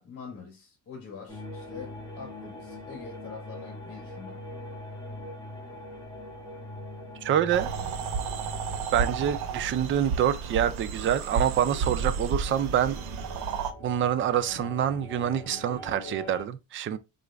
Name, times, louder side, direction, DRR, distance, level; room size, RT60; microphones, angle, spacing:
voice 1, 0.0-4.4, left 5 dB, 40° left, 1.3 m, -44 dB
sound 1, 1.3-11.4 11.9-16.4, left 1 dB, 10° left, 2.0 m, -43 dB
voice 2, 7.2-7.7 8.9-13.0 13.8-17.0, right 10 dB, 35° right, 0.4 m, -26 dB
sound 2, 7.5-13.7, right 5 dB, 90° right, 0.8 m, -32 dB
4.8 x 2.5 x 3.2 m
cardioid pair, 135°, 34 cm